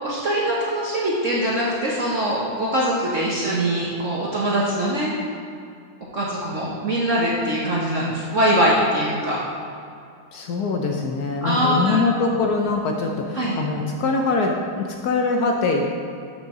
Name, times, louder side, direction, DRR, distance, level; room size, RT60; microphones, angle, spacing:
voice 1, 0.0-5.1 6.1-9.4 11.4-12.0 13.4-13.6, right 1 dB, 50° right, -5 dB, 1.1 m, -22 dB
voice 2, 10.3-15.9, left 3 dB, 70° left, 2 dB, 1.0 m, -23 dB
6.6 x 5.6 x 6.0 m, 2.5 s
omnidirectional pair, 2.1 m